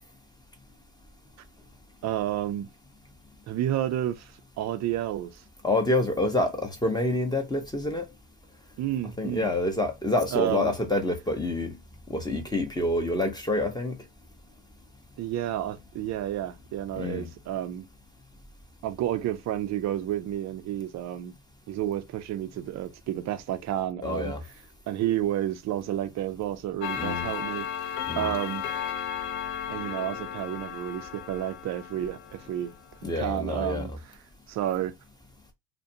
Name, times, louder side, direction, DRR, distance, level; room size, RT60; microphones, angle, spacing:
voice 1, 2.0-2.7 3.5-5.4 8.8-9.5 10.3-10.7 15.2-17.9 18.8-21.3 21.7-24.3 24.9-27.7 28.1-28.6 29.7-32.7 33.2-33.9 34.5-34.9, right 12 dB, 35° right, 0.4 m, -30 dB
voice 2, 5.6-8.1 9.2-11.8 12.1-14.0 17.0-17.3 24.0-24.4 27.0-27.3 28.0-28.3 33.0-33.9, left 1 dB, 10° left, 0.7 m, -27 dB
Clock, 26.8-32.8, left 9 dB, 60° left, 0.6 m, -34 dB
2.4 x 2.2 x 2.7 m
hypercardioid pair, 85°, 49 cm